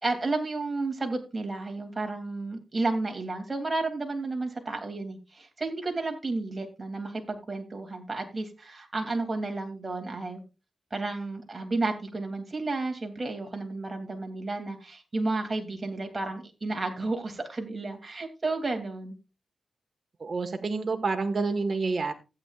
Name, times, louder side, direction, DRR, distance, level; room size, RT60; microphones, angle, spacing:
voice 1, 0.0-10.4 10.9-19.2, right 3 dB, 35° right, 3 dB, 2.8 m, -32 dB
voice 2, 20.2-22.1, right 4 dB, 50° right, 5 dB, 1.5 m, -28 dB
15.5 x 9.1 x 2.4 m, 0.29 s
cardioid pair, 65°, 0 cm